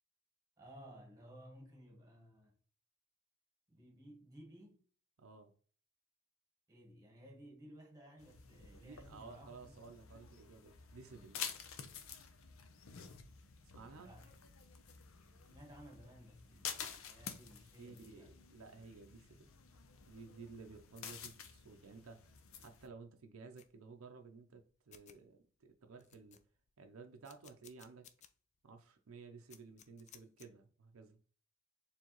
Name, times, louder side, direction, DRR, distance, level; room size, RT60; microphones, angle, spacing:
voice 1, 0.6-2.5 3.7-4.8 6.7-9.7 13.9-14.3 15.5-18.3, equal, 15° right, 1.4 m, -57 dB
voice 2, 5.2-5.5 8.8-11.4 13.7-14.1 17.8-19.5 20.1-22.2 22.6-26.4 26.8-28.1 28.6-31.2, right 4 dB, 75° right, 0.6 m, -55 dB
sound 1, 8.2-22.9, left 7 dB, 70° left, 0.6 m, -50 dB
sound 2, 23.6-23.7 24.6-24.7 24.9-25.2 25.6-25.7 26.0-26.7 27.2-28.3 28.7-28.8 29.5-30.5, left 9 dB, 35° left, 0.3 m, -60 dB
4.6 x 3.4 x 3.0 m
head